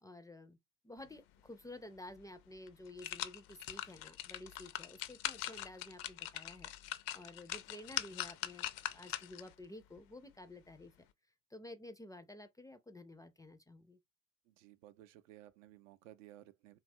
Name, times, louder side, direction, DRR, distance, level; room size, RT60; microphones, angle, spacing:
voice 1, 0.0-0.6 0.8-6.7 7.1-10.9 11.5-14.0, left 1 dB, 10° left, 0.4 m, -52 dB
sound 1, 2.1-2.2 2.7-9.5 10.0-10.1, left 13 dB, 65° left, 0.5 m, -42 dB
voice 2, 14.4-16.8, right 14 dB, 80° right, 0.5 m, -57 dB
2.8 x 2.3 x 2.6 m
hypercardioid pair, 70°, 38 cm